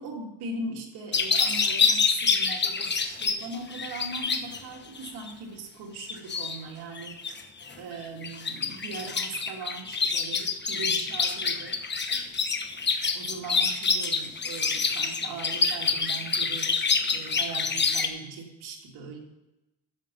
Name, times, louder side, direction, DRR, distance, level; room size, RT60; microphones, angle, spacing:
voice 1, 0.0-7.4 7.8-11.8 13.1-16.7 17.1-19.2, right 3 dB, 80° right, 0 dB, 2.4 m, -39 dB
sound 1, 1.1-4.6 5.0-5.3 6.0-6.6 7.0-7.7 8.0-18.1, left 5 dB, 30° left, 1.2 m, -27 dB
12.0 x 7.3 x 5.4 m, 0.95 s
cardioid pair, 105°, 38 cm